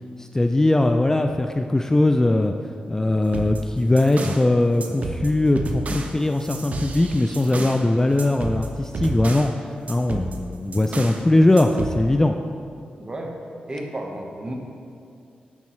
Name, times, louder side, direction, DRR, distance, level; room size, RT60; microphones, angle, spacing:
voice 1, 0.2-2.5 2.9-9.5 9.9-12.4, left 2 dB, 15° left, 5 dB, 0.3 m, -20 dB
sound 1, 3.3-4.5 4.8-7.9 8.2-9.6 9.9-11.2 11.6-12.0, right 3 dB, 55° right, 0.7 m, -31 dB
voice 2, 13.0-13.4 13.7-14.5, right 1 dB, 30° right, 1 dB, 1.2 m, -32 dB
10.5 x 5.3 x 3.2 m, 2.5 s
cardioid pair, 70°, 3 cm